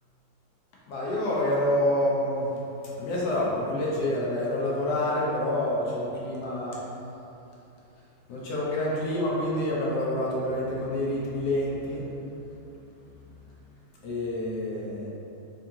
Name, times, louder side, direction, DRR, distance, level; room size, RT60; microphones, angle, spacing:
voice 1, 0.9-2.5 2.8-6.8 8.3-12.1 14.0-15.1, left 1 dB, 65° left, -5 dB, 1.1 m, -27 dB
3.6 x 2.8 x 3.5 m, 3.0 s
omnidirectional pair, 2.0 m